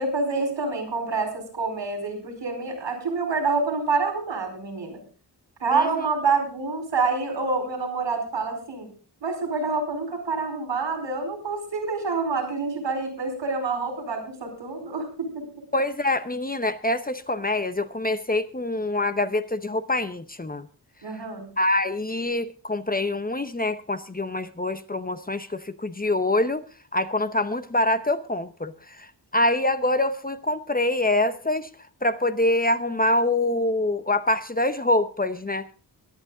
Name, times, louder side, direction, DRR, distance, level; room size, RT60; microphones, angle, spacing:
voice 1, 0.0-5.0 5.6-8.9 9.2-15.4 21.0-21.5, right 4 dB, 90° right, 5 dB, 4.7 m, -27 dB
voice 2, 5.7-6.0 15.7-20.7 21.6-26.6 26.9-31.7 32.0-35.6, left 1 dB, 20° left, 11 dB, 0.8 m, -25 dB
22.0 x 8.9 x 3.8 m, 0.37 s
wide cardioid pair, 125°, 43 cm